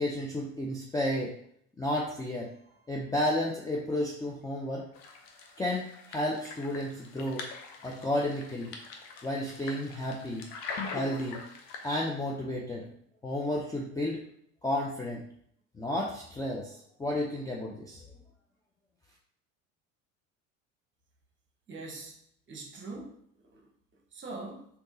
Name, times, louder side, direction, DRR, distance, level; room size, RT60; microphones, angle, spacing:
voice 1, 0.0-1.3 1.8-2.5 2.9-4.9 5.6-7.5 7.8-8.8 9.2-10.5 10.9-11.4 11.8-12.9 13.2-14.2 14.6-15.2 15.8-18.0, left 1 dB, 10° left, -3 dB, 0.4 m, -32 dB
sound 1, 5.0-11.9, left 4 dB, 65° left, 0.7 m, -43 dB
voice 2, 21.7-22.2 22.5-24.7, right 3 dB, 30° right, 1 dB, 1.0 m, -43 dB
3.5 x 2.8 x 2.7 m, 0.67 s
hypercardioid pair, 70°, 41 cm